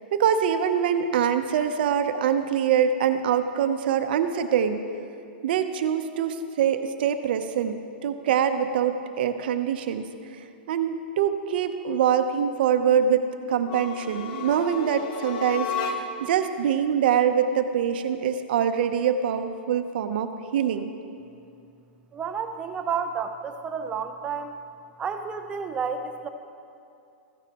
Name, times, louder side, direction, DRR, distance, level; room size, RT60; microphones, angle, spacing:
voice 1, 0.1-4.8 5.4-10.0 10.7-20.9, right 8 dB, 60° right, 8 dB, 0.7 m, -24 dB
sound 1, 13.6-16.4, left 5 dB, 50° left, 0.9 m, -33 dB
voice 2, 22.1-24.5 25.0-26.3, right 6 dB, 15° right, 6 dB, 0.6 m, -31 dB
15.0 x 11.0 x 3.0 m, 2.5 s
hypercardioid pair, 150°, 6 cm